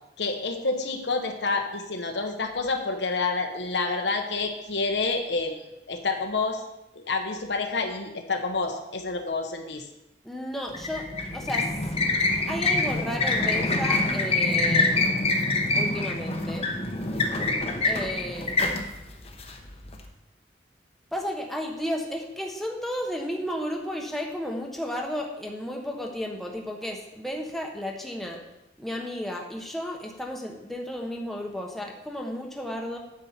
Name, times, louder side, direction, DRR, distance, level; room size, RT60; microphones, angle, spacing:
voice 1, 0.2-6.6 6.9-9.9, left 3 dB, 80° left, 4 dB, 1.1 m, -28 dB
voice 2, 10.2-11.7 12.0-12.1 12.5-15.0 15.7-16.7 17.8-18.6 21.1-28.4 28.8-33.0, equal, ahead, 0 dB, 1.1 m, -33 dB
sound 1, 10.7-20.0, left 2 dB, 35° left, 0.9 m, -25 dB
8.8 x 7.4 x 4.4 m, 0.92 s
head